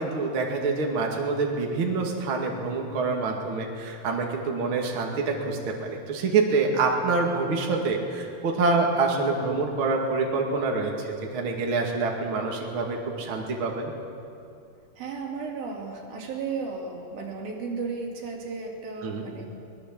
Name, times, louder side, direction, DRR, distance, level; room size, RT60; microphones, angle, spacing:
voice 1, 0.0-13.9 19.0-19.2, right 3 dB, 40° right, 0 dB, 2.5 m, -26 dB
voice 2, 15.0-19.5, right 4 dB, 70° right, 0 dB, 4.6 m, -34 dB
23.0 x 20.5 x 7.6 m, 2.6 s
omnidirectional pair, 4.4 m